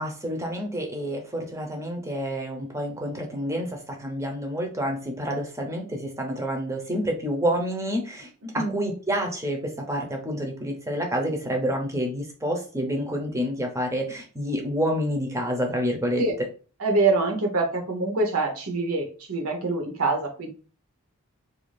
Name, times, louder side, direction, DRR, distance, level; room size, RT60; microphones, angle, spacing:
voice 1, 0.0-8.3 8.5-16.2, equal, 15° right, 2 dB, 0.5 m, -28 dB
voice 2, 8.4-8.8 16.2-16.3 16.8-20.5, right 3 dB, 75° right, 3 dB, 0.7 m, -25 dB
2.5 x 2.3 x 3.2 m, 0.38 s
head